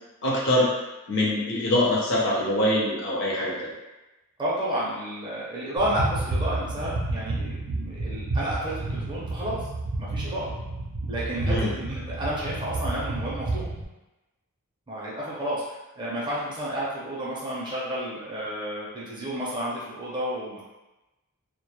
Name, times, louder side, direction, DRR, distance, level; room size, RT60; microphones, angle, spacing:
voice 1, 0.2-0.7 1.1-3.6 11.5-11.7, left 1 dB, 55° left, -5 dB, 0.6 m, -23 dB
voice 2, 4.4-9.6 10.0-10.5 11.1-13.7 14.9-20.7, right 1 dB, 20° right, -7 dB, 0.6 m, -31 dB
sound 1, 5.8-13.8, right 2 dB, 85° right, 0.4 m, -30 dB
2.1 x 2.0 x 2.8 m, 1.0 s
head